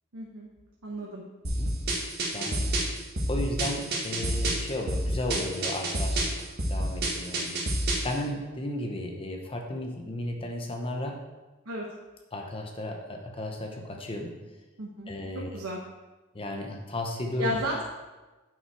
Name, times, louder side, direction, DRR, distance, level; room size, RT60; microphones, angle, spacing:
voice 1, 0.1-0.5 0.8-1.2 11.7-11.9 14.8-15.1 15.5-15.8 17.4-17.8, equal, 85° right, -3 dB, 1.1 m, -33 dB
voice 2, 1.4-1.8 2.3-2.8 3.3-7.5 8.0-11.2 12.3-14.3 15.1-15.5 16.3-17.6, left 1 dB, 25° left, 2 dB, 0.8 m, -34 dB
sound 1, 1.4-8.1, right 1 dB, 50° right, 1.8 m, -29 dB
9.1 x 5.7 x 4.7 m, 1.2 s
head